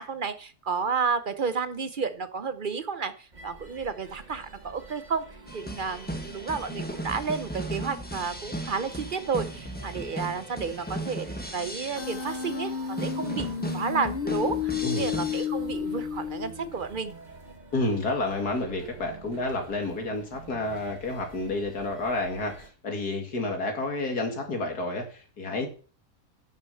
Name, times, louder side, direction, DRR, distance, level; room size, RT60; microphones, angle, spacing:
voice 1, 0.0-5.2 5.5-13.5 13.7-17.2, right 5 dB, 55° right, 12 dB, 0.6 m, -31 dB
sound 1, 3.3-22.7, right 3 dB, 30° right, 1.3 m, -48 dB
sound 2, 5.5-15.5, right 1 dB, 5° left, 1.3 m, -37 dB
Human voice, 12.0-16.9, left 8 dB, 45° left, 0.8 m, -31 dB
voice 2, 17.7-25.7, left 2 dB, 75° left, 3 dB, 2.8 m, -30 dB
11.0 x 6.5 x 5.6 m, 0.39 s
omnidirectional pair, 1.7 m